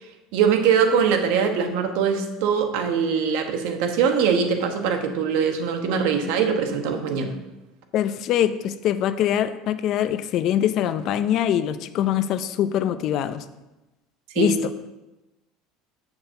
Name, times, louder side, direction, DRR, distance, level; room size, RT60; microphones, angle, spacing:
voice 1, 0.3-7.3 14.3-14.5, right 6 dB, 70° right, 6 dB, 1.0 m, -22 dB
voice 2, 7.9-13.4 14.4-14.6, left 10 dB, 45° left, 11 dB, 0.5 m, -23 dB
7.0 x 4.4 x 6.6 m, 1.0 s
cardioid pair, 150°, 0 cm